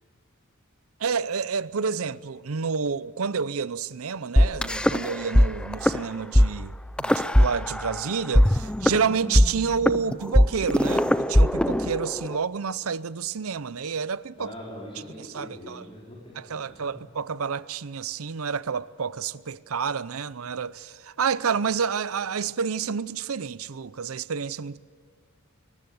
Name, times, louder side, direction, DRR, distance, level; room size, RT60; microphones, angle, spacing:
voice 1, 1.0-14.5 15.2-15.8 16.4-24.8, right 6 dB, 75° right, 0.6 m, -29 dB
sound 1, 4.4-5.5 5.7-6.0 6.3-6.5 7.0-8.0 8.3-12.4, equal, 5° left, 0.5 m, -19 dB
voice 2, 14.4-16.9, left 1 dB, 25° left, 4.8 m, -42 dB
22.5 x 19.0 x 8.0 m
head